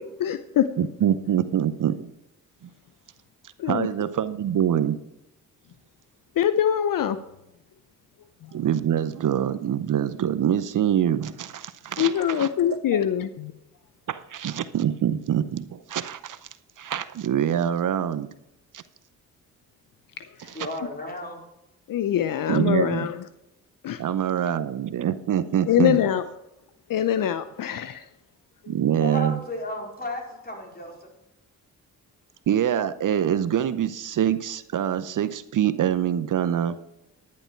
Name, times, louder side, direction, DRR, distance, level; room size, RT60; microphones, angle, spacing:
voice 1, 0.0-0.7 3.6-3.9 6.4-7.2 12.0-13.5 20.2-20.3 21.9-23.2 23.8-24.0 25.7-26.2 26.9-28.0 28.6-28.7, left 10 dB, 65° left, 0.7 m, -23 dB
voice 2, 0.8-2.1 2.6-2.7 3.7-5.0 8.5-13.0 14.1-16.5 16.8-18.3 18.7-18.8 20.4-20.6 22.5-23.1 24.0-26.0 28.7-29.4 32.5-36.8, right 9 dB, 60° right, 0.8 m, -25 dB
voice 3, 20.5-21.5 29.0-31.1, left 1 dB, 25° left, 4.4 m, -34 dB
10.5 x 10.5 x 4.5 m
supercardioid pair, 55°, 35 cm